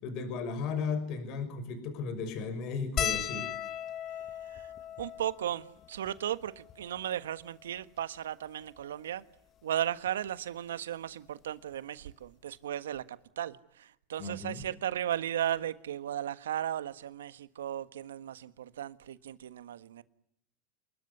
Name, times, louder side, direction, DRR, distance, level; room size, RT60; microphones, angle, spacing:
voice 1, 0.0-3.5 14.2-14.6, left 5 dB, 55° left, 5.9 m, -35 dB
sound 1, 3.0-7.6 8.3-8.4 8.6-8.8 10.1-10.3 11.7-11.8 12.1-12.3, left 10 dB, 40° left, 1.5 m, -38 dB
voice 2, 5.0-9.2 9.6-20.0, right 11 dB, 80° right, 1.5 m, -36 dB
29.5 x 21.0 x 9.8 m
hypercardioid pair, 90°, 0 cm